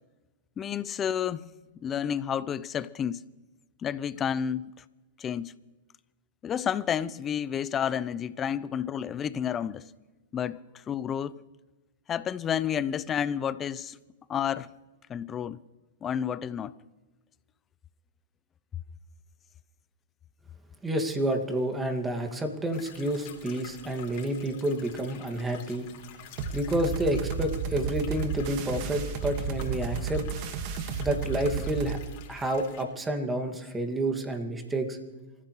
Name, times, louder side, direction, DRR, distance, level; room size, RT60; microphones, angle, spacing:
voice 1, 0.6-1.5 1.8-3.2 3.8-4.7 5.2-5.5 6.4-9.8 10.3-10.6 10.9-11.4 12.1-14.0 14.3-14.7 15.1-15.6 16.0-16.7, left 8 dB, 25° left, 0.6 m, -30 dB
voice 2, 20.8-25.9 26.5-30.2 31.0-32.0 32.3-35.0, right 1 dB, 10° right, 2.2 m, -29 dB
sound 1, 22.7-32.8, left 9 dB, 50° left, 3.6 m, -49 dB
sound 2, 26.4-32.0, right 6 dB, 45° right, 1.8 m, -32 dB
28.0 x 15.0 x 3.3 m
hypercardioid pair, 120°, 0 cm